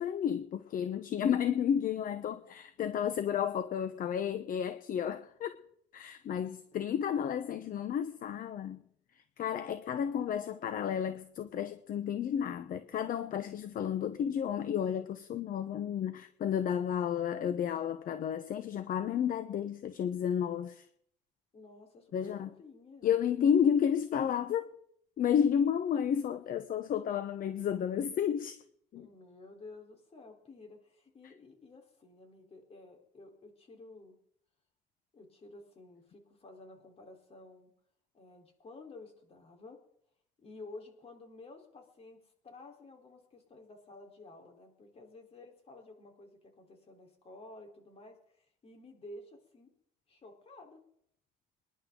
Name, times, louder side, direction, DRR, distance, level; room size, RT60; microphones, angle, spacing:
voice 1, 0.0-5.6 5.9-8.8 9.1-20.9 22.1-22.5 23.0-24.7 25.2-28.6 28.9-29.1, left 8 dB, 55° left, 10 dB, 1.0 m, -32 dB
voice 2, 21.5-23.1 29.0-34.2 35.1-37.7 38.1-39.8 40.4-49.7 50.1-50.8, left 2 dB, 35° left, 2 dB, 4.2 m, -52 dB
26.5 x 11.0 x 3.9 m, 0.68 s
cardioid pair, 110°, 17 cm